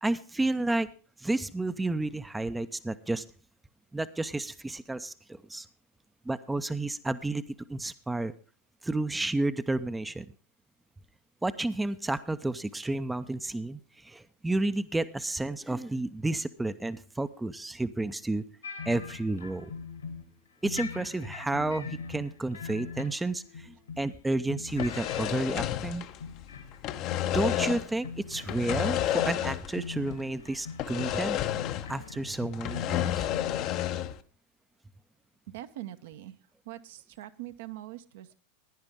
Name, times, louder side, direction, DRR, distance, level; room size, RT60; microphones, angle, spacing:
voice 1, 0.0-0.9 1.2-3.2 3.9-5.7 6.2-7.4 7.7-8.3 8.8-10.3 11.4-18.4 18.9-19.7 20.6-26.0 27.3-31.4 31.9-33.3, right 2 dB, 5° right, 12 dB, 0.6 m, -31 dB
sound 1, 18.6-20.3 20.6-24.2 24.5-26.8 27.1-27.8 28.0-33.9, left 5 dB, 75° left, 2.3 m, -42 dB
sound 2, 24.7-26.4 26.7-27.9 28.4-29.8 30.1-30.2 30.8-32.0 32.3-34.2, left 12 dB, 40° left, 0.8 m, -31 dB
voice 2, 35.5-36.4 36.7-38.3, right 15 dB, 55° right, 10 dB, 0.8 m, -42 dB
16.0 x 10.5 x 3.5 m, 0.39 s
figure-of-eight pair, 90°, 0 cm